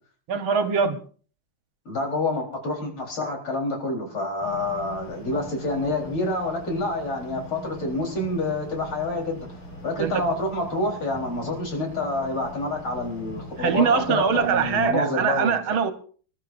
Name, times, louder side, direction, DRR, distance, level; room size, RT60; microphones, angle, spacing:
voice 1, 0.3-1.0 10.0-10.2 13.6-15.9, right 6 dB, 70° right, 1.9 m, -22 dB
voice 2, 1.9-9.5 9.8-15.6, left 2 dB, 70° left, 4.8 m, -27 dB
sound 1, 4.4-14.9, equal, 90° left, 5.9 m, -41 dB
26.5 x 12.5 x 2.6 m
omnidirectional pair, 2.4 m